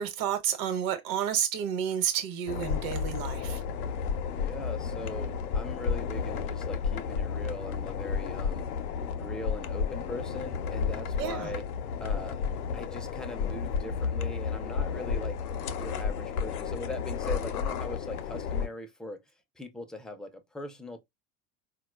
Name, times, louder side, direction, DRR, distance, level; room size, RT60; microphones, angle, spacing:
voice 1, 0.0-3.6 11.2-11.5, right 9 dB, 55° right, 1.1 m, -30 dB
sound 1, 2.5-18.7, left 6 dB, 85° left, 0.6 m, -32 dB
voice 2, 4.3-8.7 9.1-11.6 12.0-12.4 12.7-15.4 15.8-19.2 19.6-21.0, left 1 dB, ahead, 0.4 m, -40 dB
4.0 x 2.3 x 2.3 m
hypercardioid pair, 85°, 44 cm